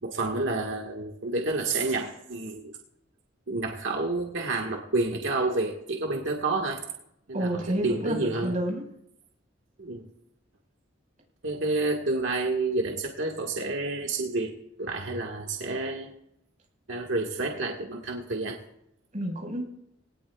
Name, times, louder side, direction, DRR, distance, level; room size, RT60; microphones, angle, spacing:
voice 1, 0.0-2.7 3.5-6.8 7.3-8.5 9.8-10.1 11.4-14.5 14.8-16.1 16.9-18.6, right 2 dB, 90° right, 1 dB, 1.6 m, -29 dB
voice 2, 7.3-8.2 8.4-8.8 19.1-19.7, right 1 dB, 40° right, -1 dB, 5.0 m, -29 dB
20.5 x 18.0 x 2.4 m, 0.79 s
head